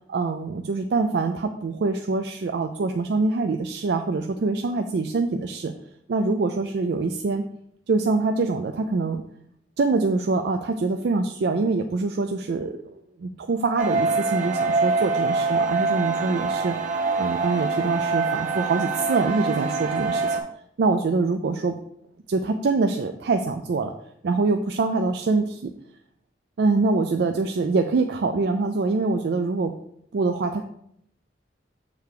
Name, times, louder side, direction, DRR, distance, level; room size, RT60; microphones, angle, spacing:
voice 1, 0.1-5.7 6.1-7.4 7.9-9.2 9.8-16.8 17.2-20.4 20.8-21.8 22.3-23.9 24.2-25.7 26.6-29.7 30.1-30.6, right 3 dB, 65° right, 6 dB, 0.4 m, -24 dB
sound 1, 13.8-20.4, right 3 dB, 45° right, 0.8 m, -25 dB
6.6 x 3.4 x 4.8 m, 0.72 s
head